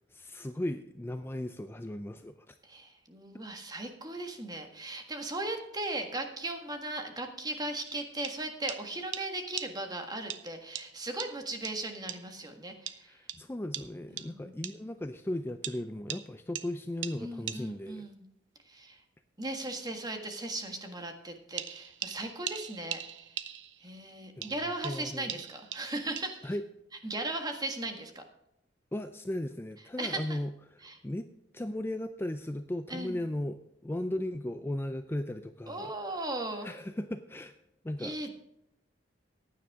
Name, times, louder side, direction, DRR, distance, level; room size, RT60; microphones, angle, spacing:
voice 1, 0.0-2.5 13.0-18.1 24.4-24.6 24.8-25.3 26.4-26.6 28.9-31.3 31.5-33.6 33.8-36.2 36.6-37.5 37.8-38.3, left 1 dB, 10° left, 9 dB, 0.4 m, -36 dB
voice 2, 2.6-13.2 14.1-14.7 17.2-18.2 18.7-19.0 19.4-23.4 23.8-26.5 27.0-28.2 30.0-30.4 30.8-31.0 32.9-33.2 35.7-36.7 38.0-38.3, right 2 dB, 20° right, 5 dB, 1.6 m, -37 dB
sound 1, 7.9-8.0 8.2-8.4 8.7-8.8 9.1-9.3 9.6-9.7 10.3-10.4 10.8-10.9 11.2-11.3 11.7-11.8 12.1-12.2 12.9-13.0 13.3-13.4 13.7-13.9 14.2-14.3 14.6-14.8 15.6-15.8 16.1-16.2 16.6-16.7 17.0-17.2 17.5-17.6 21.6-23.9 24.4-26.5, right 11 dB, 70° right, 0.8 m, -40 dB
15.0 x 10.0 x 3.6 m, 0.84 s
head